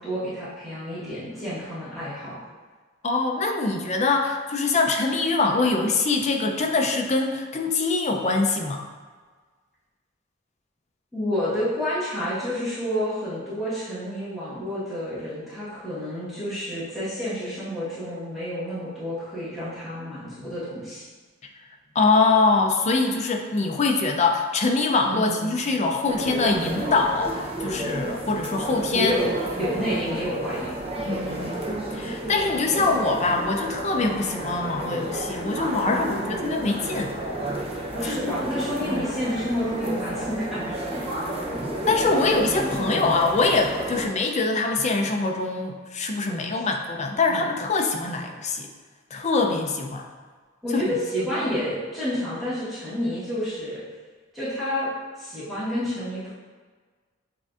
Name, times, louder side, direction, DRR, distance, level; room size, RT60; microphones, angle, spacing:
voice 1, 0.0-2.4 11.1-21.1 25.1-25.6 28.9-29.3 29.5-30.8 31.3-31.5 35.9-36.2 37.9-40.6 40.9-41.0 42.5-42.8 46.3-46.5 47.3-47.5 50.6-53.8 54.3-54.9 55.2-56.3, equal, ahead, -13 dB, 1.3 m, -29 dB
voice 2, 3.0-8.9 21.9-29.2 31.1-31.5 31.9-37.1 38.0-38.3 38.9-39.1 41.9-48.7 49.1-50.1 50.7-50.8 51.4-51.5, left 3 dB, 35° left, 3 dB, 0.5 m, -24 dB
sound 1, 26.1-44.1, right 1 dB, 30° right, 0.6 m, -31 dB
7.4 x 2.6 x 2.4 m, 1.5 s
head